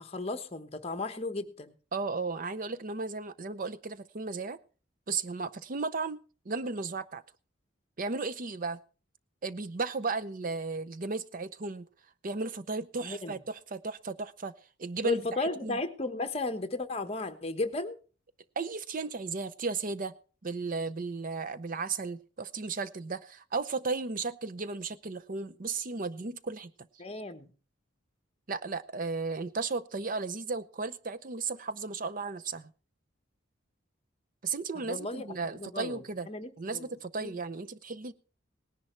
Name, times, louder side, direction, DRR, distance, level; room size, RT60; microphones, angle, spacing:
voice 1, 0.0-1.7 13.0-13.4 15.0-17.9 27.0-27.5 34.9-35.3 35.6-36.9 37.2-37.3, left 2 dB, 30° left, 1.2 m, -34 dB
voice 2, 1.9-4.6 5.1-6.2 6.5-7.2 8.0-8.8 9.4-11.8 12.2-14.5 14.8-15.2 15.6-15.8 18.6-20.2 20.4-26.7 28.5-32.7 34.4-36.3 36.6-38.1, right 4 dB, 45° right, 0.6 m, -35 dB
18.5 x 10.5 x 4.5 m
head